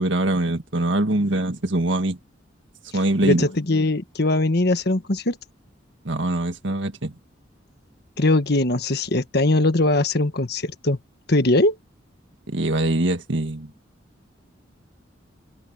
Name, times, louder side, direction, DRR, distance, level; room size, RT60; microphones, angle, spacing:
voice 1, 0.0-2.2 2.9-3.4 6.0-7.1 12.5-13.7, right 1 dB, 70° right, 1.7 m, -23 dB
voice 2, 3.2-5.4 8.2-11.0 11.3-11.8, left 2 dB, 55° left, 1.5 m, -21 dB
open air
head